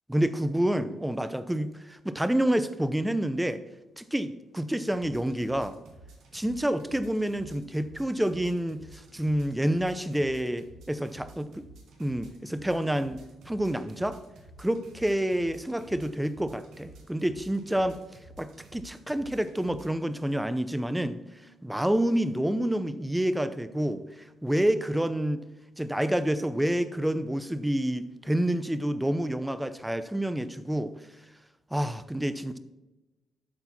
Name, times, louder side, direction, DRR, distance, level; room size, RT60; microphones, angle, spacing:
voice 1, 0.1-3.6 4.0-5.8 6.3-11.6 12.0-14.2 14.6-18.0 18.4-21.2 21.6-24.0 24.4-25.4 25.8-30.9 31.7-32.6, right 1 dB, 5° right, 12 dB, 0.7 m, -28 dB
sound 1, 4.9-19.9, right 2 dB, 70° right, 2.3 m, -51 dB
12.0 x 4.5 x 4.3 m, 1.1 s
cardioid pair, 90°, 0 cm